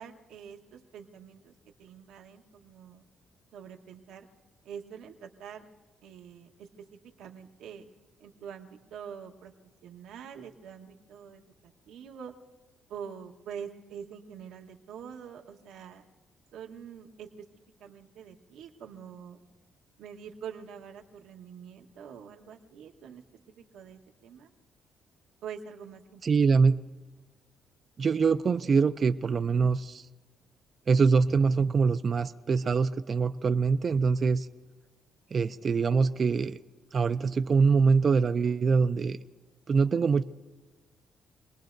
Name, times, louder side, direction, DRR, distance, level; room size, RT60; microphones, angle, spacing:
voice 1, 0.0-1.5 1.8-3.0 3.5-4.3 4.6-5.7 6.0-6.7 7.2-7.8 8.2-9.5 9.8-12.3 12.9-16.1 16.5-17.3 17.8-19.4 20.0-23.2 23.6-24.5 25.4-26.2, right 7 dB, 90° right, 2 dB, 1.3 m, -45 dB
voice 2, 26.2-26.7 28.0-30.1 30.9-34.5 35.3-36.6 36.9-39.2 39.7-40.2, right 5 dB, 45° right, 10 dB, 0.5 m, -24 dB
27.0 x 20.0 x 2.6 m, 1.2 s
cardioid pair, 90°, 0 cm